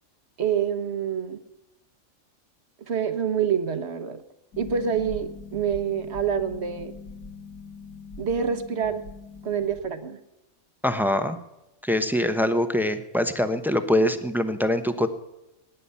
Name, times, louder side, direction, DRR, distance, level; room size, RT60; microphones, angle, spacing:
voice 1, 0.4-1.4 2.9-4.2 4.6-6.9 8.2-9.0 9.4-10.2, right 7 dB, 50° right, 10 dB, 1.3 m, -26 dB
Harp, 4.5-9.8, left 4 dB, 80° left, 1.9 m, -42 dB
voice 2, 10.8-11.4 11.8-15.1, left 1 dB, ahead, 9 dB, 0.8 m, -23 dB
18.0 x 10.0 x 5.6 m, 0.94 s
omnidirectional pair, 1.5 m